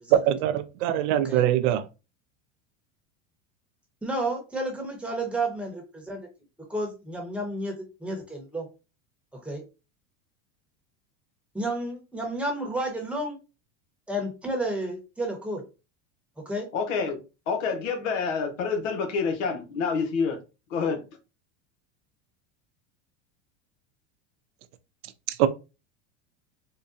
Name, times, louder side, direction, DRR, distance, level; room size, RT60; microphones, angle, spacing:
voice 1, 0.1-1.8 25.3-25.5, right 11 dB, 70° right, 0.5 m, -22 dB
voice 2, 4.0-6.2 6.7-8.7 9.3-9.6 11.5-13.4 14.1-15.6 16.4-16.7, right 1 dB, 5° right, 0.9 m, -31 dB
voice 3, 16.7-17.2 17.5-20.4 20.7-21.0, left 5 dB, 80° left, 1.0 m, -27 dB
3.8 x 2.2 x 2.6 m
supercardioid pair, 125°, 38 cm